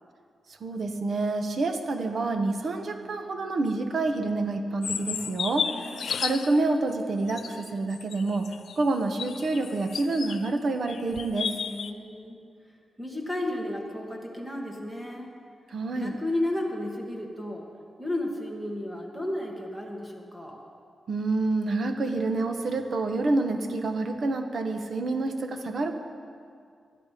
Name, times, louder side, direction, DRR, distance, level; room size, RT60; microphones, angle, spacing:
voice 1, 0.6-11.5 15.7-16.2 21.1-25.9, right 2 dB, 50° right, 6 dB, 1.2 m, -28 dB
sound 1, 4.8-6.6 7.3-10.5 10.8-11.9, left 7 dB, 65° left, 0.5 m, -33 dB
voice 2, 5.7-6.3 11.7-12.4 13.0-15.3 15.9-17.6 18.0-20.6, left 1 dB, 5° right, 0 dB, 2.1 m, -33 dB
20.0 x 11.5 x 5.1 m, 2.3 s
wide cardioid pair, 145°, 0 cm